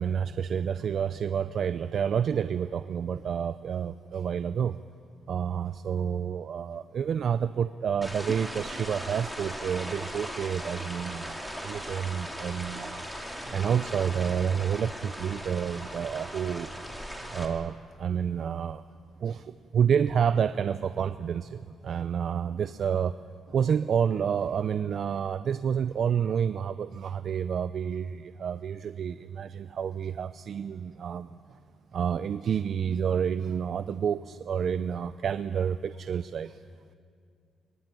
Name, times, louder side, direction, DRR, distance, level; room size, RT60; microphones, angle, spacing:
voice 1, 0.0-4.8 5.3-13.0 13.4-16.7 17.3-18.8 19.2-23.1 23.5-31.4 31.9-36.6, right 7 dB, 60° right, 13 dB, 0.6 m, -29 dB
sound 1, 8.0-17.4, equal, 5° left, 3.9 m, -38 dB
23.0 x 22.5 x 9.2 m, 2.4 s
cardioid pair, 90°, 0 cm